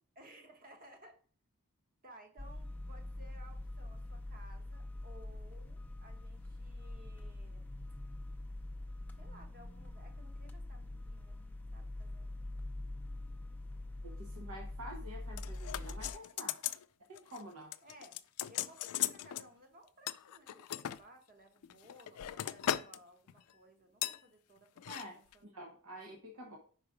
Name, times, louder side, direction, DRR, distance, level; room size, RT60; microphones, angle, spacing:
voice 1, 0.1-1.2 2.0-7.7 9.2-11.4 11.7-12.3 17.8-25.7, right 1 dB, 40° right, 4 dB, 1.2 m, -59 dB
sound 1, 2.4-16.1, left 1 dB, 5° left, 0.4 m, -44 dB
voice 2, 14.0-16.6 17.1-17.8 24.8-26.6, equal, 80° right, 2 dB, 1.0 m, -49 dB
sound 2, 15.4-16.8 17.2-17.4 17.7-19.5 20.1-21.0 21.6-23.0 23.3-23.5 24.0-24.2 24.8-25.0 25.3-25.4, left 12 dB, 80° left, 0.4 m, -38 dB
5.0 x 4.8 x 4.9 m, 0.42 s
head